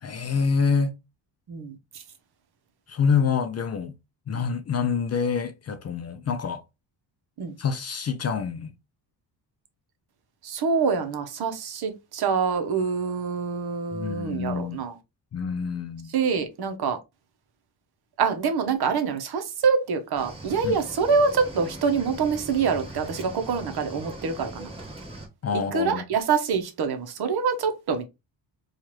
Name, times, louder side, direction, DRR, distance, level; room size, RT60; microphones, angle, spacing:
voice 1, 0.0-1.0 2.9-3.9 4.3-6.6 7.6-8.7 13.9-14.8 15.3-16.1 20.6-20.8 25.4-26.0, left 5 dB, 40° left, 0.4 m, -26 dB
voice 2, 1.5-2.0 7.4-7.5 10.4-15.0 16.1-17.0 18.2-24.7 25.5-28.0, right 5 dB, 60° right, 0.9 m, -25 dB
Cricket / Waves surf, 20.2-25.3, right 1 dB, 15° right, 1.3 m, -40 dB
4.5 x 2.4 x 3.0 m
cardioid pair, 135°, 44 cm